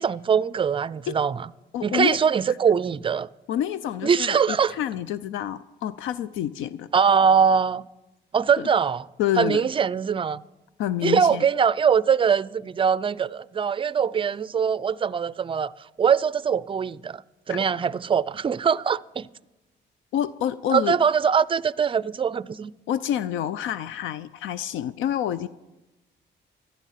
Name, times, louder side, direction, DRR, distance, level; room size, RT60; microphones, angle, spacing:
voice 1, 0.0-1.5 1.8-3.3 4.0-4.8 6.9-7.8 8.3-9.1 9.4-10.4 11.0-15.7 16.0-17.2 17.5-19.3 20.7-22.7, right 7 dB, 25° right, 0.4 m, -22 dB
voice 2, 1.7-2.2 3.5-6.9 8.6-8.7 9.2-9.6 10.8-11.5 17.5-17.6 20.1-21.0 22.9-25.5, left 11 dB, 85° left, 0.4 m, -28 dB
15.5 x 11.5 x 5.7 m
cardioid pair, 90°, 20 cm